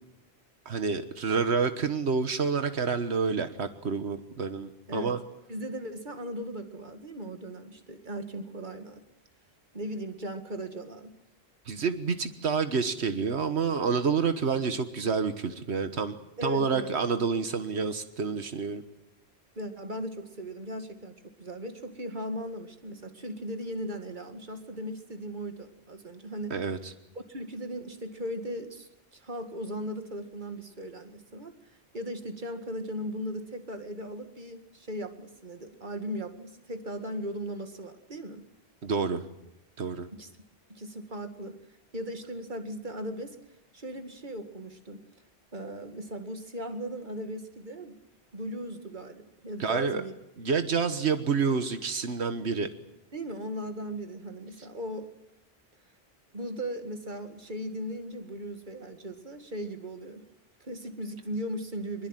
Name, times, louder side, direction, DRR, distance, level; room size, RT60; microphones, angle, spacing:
voice 1, 0.6-5.2 11.7-16.1 16.4-18.8 26.5-26.9 38.8-39.2 39.8-40.1 49.6-50.0 50.4-52.7, right 5 dB, 90° right, 9 dB, 1.6 m, -28 dB
voice 2, 5.5-9.0 9.7-11.1 16.4-16.9 19.6-26.6 27.3-31.6 31.9-38.4 40.1-40.3 40.7-41.6 41.9-43.4 43.7-45.0 45.5-48.0 48.3-50.1 53.1-55.1 56.3-60.2 60.6-62.1, equal, 50° right, 7 dB, 2.4 m, -38 dB
25.0 x 22.0 x 9.2 m, 0.85 s
omnidirectional pair, 1.1 m